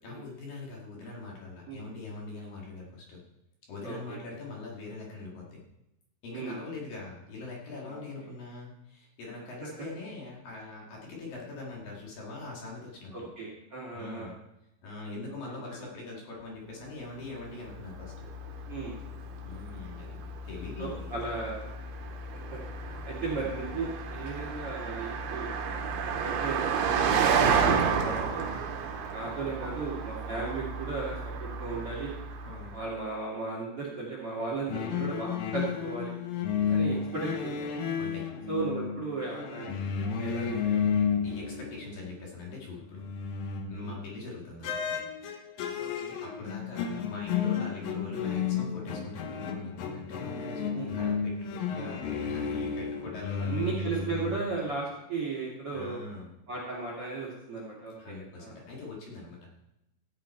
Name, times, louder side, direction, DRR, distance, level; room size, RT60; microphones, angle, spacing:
voice 1, 0.0-3.2 3.7-5.6 6.2-13.3 13.9-14.3 14.8-18.1 19.4-20.2 20.4-21.1 23.2-23.5 32.4-32.8 38.0-38.3 41.2-43.0 43.7-45.0 46.2-54.1 55.7-56.3 58.0-59.5, left 3 dB, 50° left, -3 dB, 3.6 m, -42 dB
voice 2, 3.8-4.2 6.3-6.6 7.9-8.0 13.1-14.3 15.7-15.8 18.7-19.0 20.8-21.6 22.5-22.6 23.0-25.5 26.1-26.8 27.2-28.5 29.1-32.1 32.7-36.1 36.7-37.7 38.5-39.7 40.0-40.8 43.8-43.9 45.8-46.2 50.7-51.0 51.8-51.9 53.4-56.0 56.5-58.6, right 3 dB, 40° right, -3 dB, 2.3 m, -36 dB
Car passing by, 17.1-32.8, right 6 dB, 75° right, 3.6 m, -32 dB
sound 1, 34.7-42.2 42.5-44.1 44.6-54.4, left 7 dB, 85° left, 2.0 m, -32 dB
15.5 x 9.1 x 4.5 m, 0.87 s
omnidirectional pair, 5.6 m